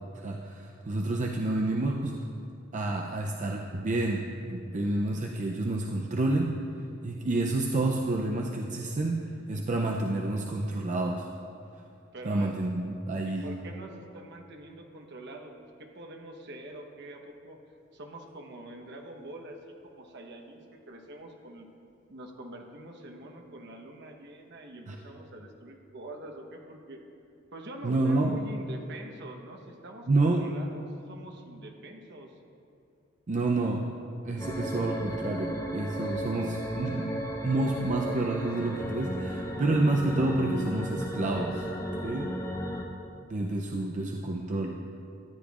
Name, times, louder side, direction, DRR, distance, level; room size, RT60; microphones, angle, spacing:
voice 1, 0.2-2.2 2.7-6.6 7.0-11.3 12.2-13.5 24.9-25.0 27.8-28.3 30.1-30.5 33.3-34.0 34.2-37.1 37.4-41.7 42.0-42.3 43.3-44.8, right 2 dB, 35° right, 1 dB, 0.5 m, -29 dB
voice 2, 12.1-12.6 13.2-15.5 15.8-17.6 17.9-21.7 22.1-27.0 27.5-32.3, right 1 dB, 60° right, 3 dB, 1.0 m, -45 dB
sound 1, 34.4-42.8, equal, 15° left, 0.8 m, -35 dB
13.5 x 9.6 x 2.4 m, 2.6 s
head